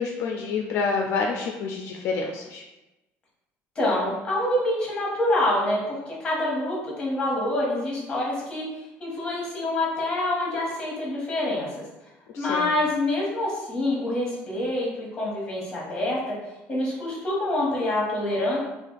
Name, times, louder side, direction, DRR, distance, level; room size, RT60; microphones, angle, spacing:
voice 1, 0.0-2.6 12.3-12.7, left 4 dB, 60° left, 1 dB, 0.4 m, -28 dB
voice 2, 3.7-8.7 9.0-11.7 12.4-16.2 16.7-18.6, left 1 dB, 20° left, -4 dB, 1.1 m, -26 dB
2.5 x 2.4 x 3.8 m, 1.0 s
cardioid pair, 145°, 5 cm